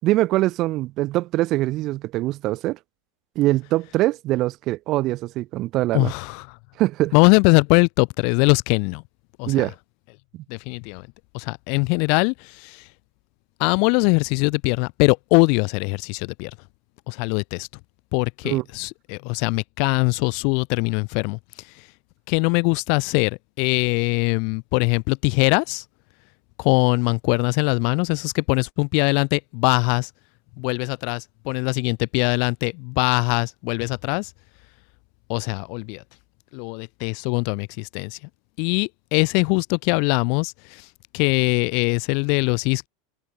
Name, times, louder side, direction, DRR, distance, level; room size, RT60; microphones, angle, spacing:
voice 1, 0.0-2.8 3.3-6.1 6.8-7.1 9.5-9.7 10.3-10.4 18.4-18.6, right 17 dB, 45° right, 4.4 m, -23 dB
voice 2, 5.9-6.6 7.1-9.0 9.4-9.5 10.5-11.1 11.3-12.9 13.6-16.5 17.1-17.7 18.1-21.9 22.3-25.8 26.6-30.1 30.6-34.3 35.3-36.0 36.5-38.2 38.6-40.9 41.1-42.9, left 38 dB, 55° left, 1.7 m, -22 dB
hypercardioid pair, 85°, 0 cm